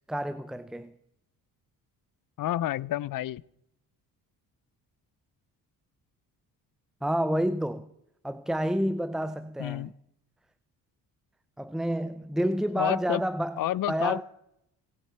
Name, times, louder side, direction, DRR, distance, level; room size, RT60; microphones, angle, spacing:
voice 1, 0.1-0.9 7.0-7.9 8.2-9.9 11.6-14.2, equal, ahead, 0.5 m, -29 dB
voice 2, 2.4-3.4 9.6-9.9 12.8-13.2 13.6-14.2, left 13 dB, 60° left, 0.6 m, -29 dB
26.5 x 9.0 x 4.4 m
cardioid pair, 90°, 38 cm